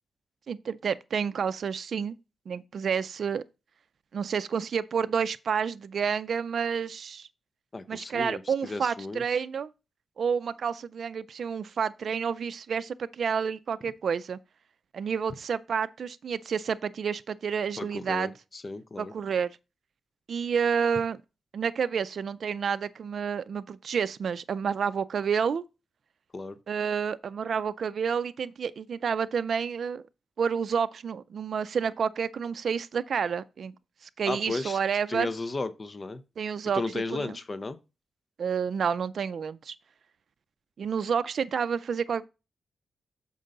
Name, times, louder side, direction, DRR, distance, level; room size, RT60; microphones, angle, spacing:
voice 1, 0.5-2.2 2.5-3.4 4.1-7.3 7.9-9.7 10.2-14.4 14.9-18.3 19.0-19.5 20.3-21.2 21.5-25.6 26.7-30.0 30.4-33.7 34.2-35.3 36.4-36.8 37.1-37.3 38.4-39.7 40.8-42.3, right 6 dB, 65° right, 0.4 m, -29 dB
voice 2, 7.7-9.2 17.8-19.1 26.3-26.6 34.3-34.8 35.1-36.2 36.7-37.8, left 3 dB, 30° left, 0.7 m, -34 dB
6.6 x 5.4 x 3.8 m
cardioid pair, 95°, 0 cm